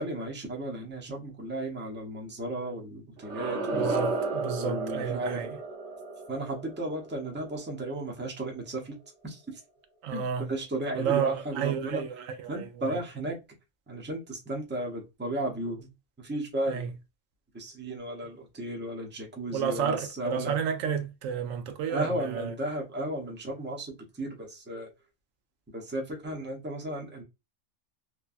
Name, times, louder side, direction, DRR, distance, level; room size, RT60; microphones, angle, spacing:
voice 1, 0.0-4.0 4.6-5.5 6.3-8.9 9.2-9.4 10.1-12.0 12.5-13.4 13.9-15.9 16.2-16.9 17.5-20.5 21.9-24.9 25.7-27.2, right 1 dB, 10° right, 0.6 m, -34 dB
sound 1, 3.2-8.1, right 3 dB, 65° right, 1.1 m, -33 dB
voice 2, 3.7-5.6 10.0-10.5 10.9-13.0 16.7-16.9 19.5-22.5, right 7 dB, 90° right, 1.0 m, -31 dB
3.2 x 2.2 x 2.4 m
omnidirectional pair, 1.3 m